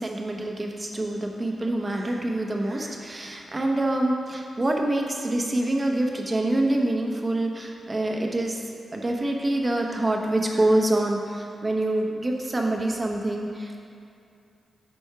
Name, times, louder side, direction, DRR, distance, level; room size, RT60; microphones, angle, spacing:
voice 1, 0.0-8.6 8.9-13.8, right 1 dB, 30° right, 1 dB, 1.0 m, -26 dB
11.0 x 4.4 x 4.8 m, 2.6 s
cardioid pair, 90°, 0 cm